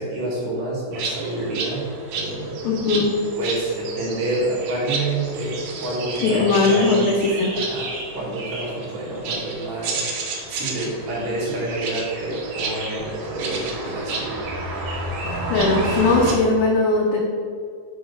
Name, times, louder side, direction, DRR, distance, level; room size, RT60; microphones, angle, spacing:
voice 1, 0.0-2.7 3.4-7.0 7.5-14.3, right 2 dB, 55° right, -7 dB, 2.2 m, -28 dB
sound 1, 0.9-16.3, right 3 dB, 75° right, 2.1 m, -30 dB
voice 2, 2.6-3.1 6.2-7.5 15.5-17.2, left 3 dB, 85° left, -3 dB, 2.9 m, -19 dB
6.4 x 5.8 x 3.4 m, 2.2 s
omnidirectional pair, 4.7 m